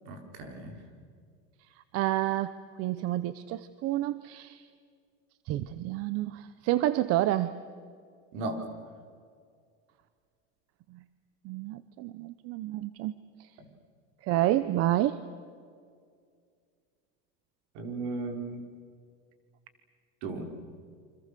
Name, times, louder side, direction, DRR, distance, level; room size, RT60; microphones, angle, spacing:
voice 1, 0.0-0.7 8.3-8.6 13.6-13.7 17.7-18.6 20.2-20.4, right 3 dB, 65° right, 4 dB, 4.8 m, -36 dB
voice 2, 1.9-4.6 5.5-7.5 11.4-13.1 14.2-15.2, right 14 dB, 50° right, 14 dB, 0.9 m, -29 dB
29.0 x 25.5 x 6.8 m, 2.1 s
cardioid pair, 150°, 31 cm